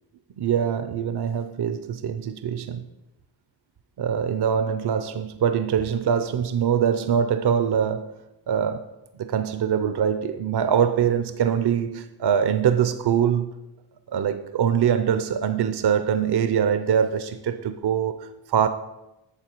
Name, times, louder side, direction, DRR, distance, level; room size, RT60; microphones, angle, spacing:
voice 1, 0.4-2.8 4.0-8.1 8.5-8.8 9.2-13.5 14.1-18.7, right 8 dB, 60° right, 0.7 m, -23 dB
9.0 x 6.5 x 4.6 m
supercardioid pair, 40°, 47 cm